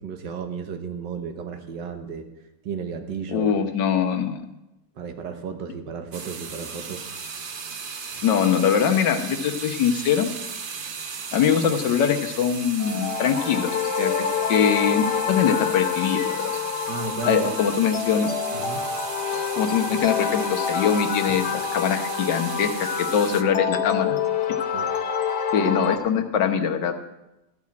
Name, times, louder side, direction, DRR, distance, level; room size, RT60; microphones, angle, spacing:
voice 1, 0.0-2.3 2.6-3.6 5.0-7.1 16.9-17.6 18.5-18.8 24.7-24.9, right 5 dB, 80° right, 6 dB, 1.7 m, -33 dB
voice 2, 3.3-4.4 8.2-10.3 11.3-16.6 17.2-18.3 19.5-24.2 25.5-27.1, left 7 dB, 85° left, 5 dB, 1.7 m, -23 dB
sound 1, 6.1-23.4, right 5 dB, 60° right, 0.5 m, -36 dB
sound 2, 12.8-26.0, left 7 dB, 70° left, 1.4 m, -27 dB
13.5 x 4.9 x 8.5 m, 0.95 s
omnidirectional pair, 1.9 m